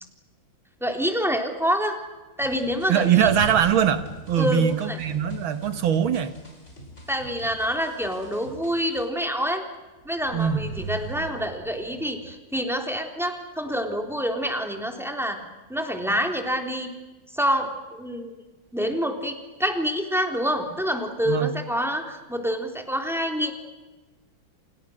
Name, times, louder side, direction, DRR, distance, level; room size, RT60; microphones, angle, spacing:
voice 1, 0.8-2.0 2.4-3.3 4.4-5.0 7.1-9.6 10.1-15.4 15.7-16.9 17.3-18.4 18.7-19.3 19.6-23.5, equal, ahead, 4 dB, 3.5 m, -27 dB
sound 1, 2.4-9.0, equal, 35° left, 6.0 m, -46 dB
voice 2, 2.9-6.4 10.3-10.6 21.3-21.5, right 8 dB, 85° right, 10 dB, 2.3 m, -22 dB
sound 2, 3.1-5.5 10.1-12.4, right 7 dB, 60° right, 1.5 m, -38 dB
29.5 x 28.0 x 6.6 m, 1.2 s
omnidirectional pair, 2.2 m